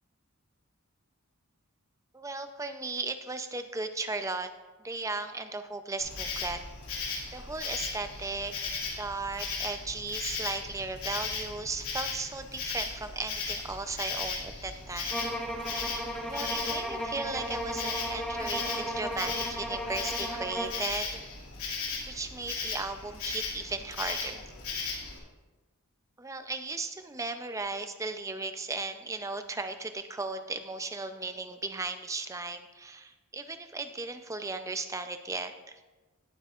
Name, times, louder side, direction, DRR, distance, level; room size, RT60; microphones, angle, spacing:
voice 1, 2.1-4.5 4.8-6.6 7.3-8.5 9.0-15.2 16.2-21.2 22.1-24.4 26.2-35.7, right 3 dB, 15° right, 8 dB, 0.5 m, -36 dB
Insect, 6.0-25.2, left 4 dB, 85° left, 2.4 m, -37 dB
sound 1, 15.1-20.9, equal, ahead, 0.9 m, -35 dB
17.5 x 7.9 x 2.5 m, 1.2 s
head